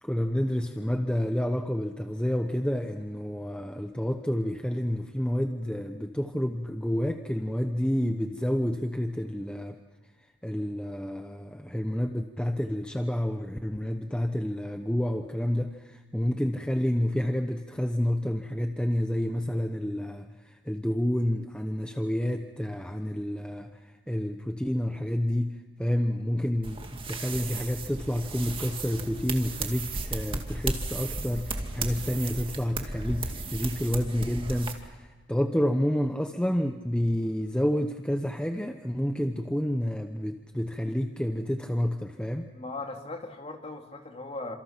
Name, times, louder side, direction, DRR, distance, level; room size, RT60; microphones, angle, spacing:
voice 1, 0.0-9.8 10.4-42.5, equal, 5° left, 5 dB, 0.9 m, -29 dB
sound 1, 26.6-34.7, right 3 dB, 25° right, 2.2 m, -35 dB
voice 2, 42.5-44.6, left 2 dB, 30° left, 3 dB, 2.8 m, -38 dB
29.5 x 27.0 x 5.9 m, 1.3 s
head